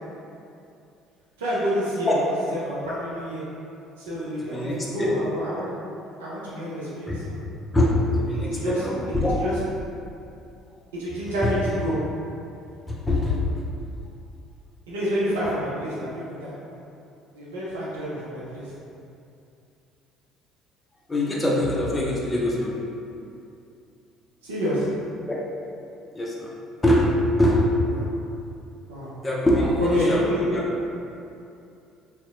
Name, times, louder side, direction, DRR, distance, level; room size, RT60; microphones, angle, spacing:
voice 1, 1.4-2.2 2.5-3.4 4.0-5.7 6.2-7.4 8.3-8.9 9.3-9.6 10.9-12.0 14.9-16.5 17.3-18.7 24.4-24.9 27.9-28.1 28.9-29.2 29.8-30.4, equal, 80° right, -8 dB, 0.4 m, -29 dB
voice 2, 4.4-4.7 5.0-5.1 7.1-7.2 7.7-7.9 8.2-9.4 12.9-13.4 21.1-22.7 25.3-25.4 26.1-26.5 26.8-27.1 27.4-27.6 29.2-30.6, left 1 dB, 20° left, -4 dB, 0.5 m, -23 dB
2.6 x 2.0 x 2.4 m, 2.6 s
hypercardioid pair, 60°, 0 cm